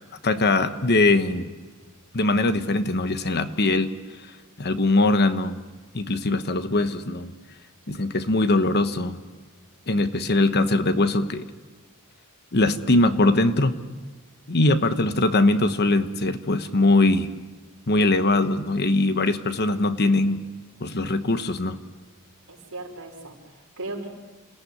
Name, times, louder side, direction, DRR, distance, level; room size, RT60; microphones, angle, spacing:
voice 1, 0.2-1.5 2.1-3.9 4.6-5.6 5.9-7.3 7.9-9.2 9.9-11.4 12.5-13.8 14.5-17.3 17.9-20.4 20.8-21.8, left 2 dB, 50° left, 10 dB, 1.2 m, -21 dB
voice 2, 22.5-24.1, right 2 dB, 65° right, 0 dB, 5.7 m, -37 dB
28.5 x 17.0 x 9.8 m, 1.3 s
head